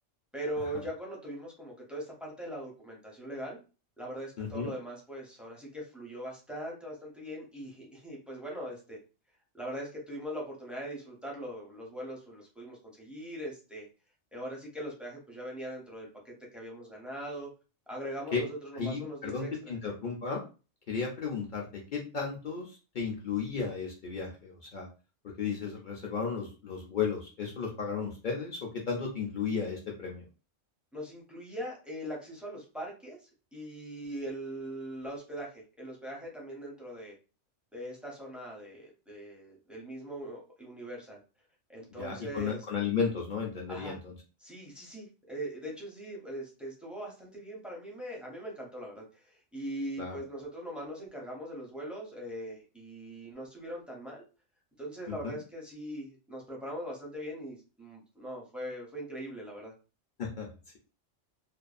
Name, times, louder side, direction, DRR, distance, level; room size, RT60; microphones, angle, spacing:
voice 1, 0.3-3.6 4.0-9.0 9.5-13.9 14.3-17.5 17.9-19.8 30.9-33.2 33.5-37.1 37.7-41.2 41.7-42.7 43.7-44.0 44.4-54.2 54.8-59.7, right 1 dB, ahead, -3 dB, 0.5 m, -41 dB
voice 2, 4.4-4.7 18.3-18.4 18.7-20.4 20.9-21.7 21.9-24.9 25.2-30.2 42.0-44.1 50.0-50.2 55.1-55.4 60.2-60.5, left 5 dB, 55° left, -1 dB, 0.6 m, -34 dB
2.6 x 2.3 x 2.4 m, 0.33 s
omnidirectional pair, 1.3 m